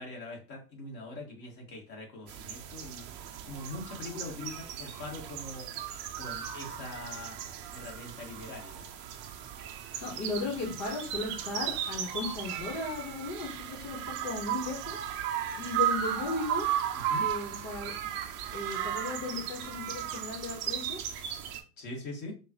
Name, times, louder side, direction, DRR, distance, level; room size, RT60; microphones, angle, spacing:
voice 1, 0.0-5.7 6.2-7.4 7.7-8.9 16.9-17.3 17.8-18.1 21.8-22.3, left 2 dB, 45° left, -1 dB, 2.0 m, -43 dB
sound 1, 2.3-21.6, right 10 dB, 25° right, 0.4 m, -36 dB
voice 2, 10.0-15.0 15.6-16.7 17.2-17.9 18.5-21.0, left 3 dB, 75° left, 0 dB, 1.5 m, -36 dB
5.2 x 2.5 x 3.0 m, 0.34 s
hypercardioid pair, 115°, 50 cm